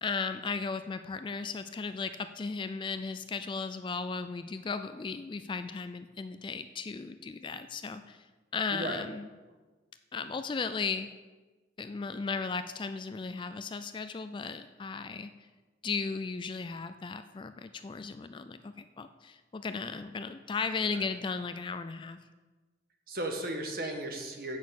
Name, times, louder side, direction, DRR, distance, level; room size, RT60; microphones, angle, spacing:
voice 1, 0.0-8.2 8.5-9.3 10.1-11.1 11.8-15.3 15.8-22.2, left 4 dB, 25° left, 11 dB, 0.3 m, -36 dB
voice 2, 8.7-9.0 20.8-21.0 23.1-24.6, right 1 dB, 50° right, 3 dB, 1.4 m, -36 dB
8.4 x 6.3 x 6.9 m, 1.3 s
head